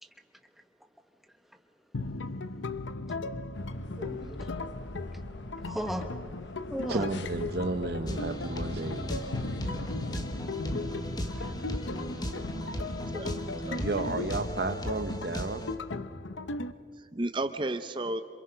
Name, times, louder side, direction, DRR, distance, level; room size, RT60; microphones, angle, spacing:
voice 1, 0.0-0.9 1.1-1.7 2.0-2.1 2.6-2.7 3.1-3.2 3.9-4.8 5.1-5.2 5.5-6.3 6.7-7.0 10.1-10.4 10.7-13.1, equal, ahead, 1.2 m, -42 dB
sound 1, 1.9-16.7, left 3 dB, 90° left, 0.8 m, -37 dB
sound 2, 3.5-14.7, left 1 dB, 75° left, 1.3 m, -43 dB
voice 2, 6.9-9.2 9.6-9.8 13.8-15.6, right 2 dB, 55° right, 0.8 m, -33 dB
sound 3, 8.0-15.7, equal, 20° left, 1.4 m, -37 dB
voice 3, 13.1-13.8 17.0-18.2, right 2 dB, 25° right, 0.6 m, -33 dB
27.5 x 27.0 x 5.7 m
head